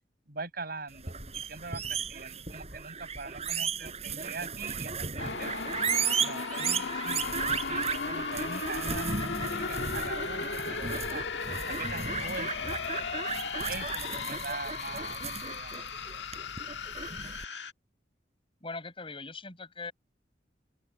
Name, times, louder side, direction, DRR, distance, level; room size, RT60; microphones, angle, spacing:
voice 1, 0.3-5.6 6.2-11.2 11.7-13.1 13.7-15.8, right 4 dB, 55° right, 7.5 m, -42 dB
sound 1, 0.9-17.4, right 6 dB, 35° right, 5.9 m, -35 dB
sound 2, 5.2-17.7, left 5 dB, 80° left, 1.5 m, -36 dB
voice 2, 18.6-19.9, left 3 dB, 30° left, 7.4 m, -40 dB
open air
head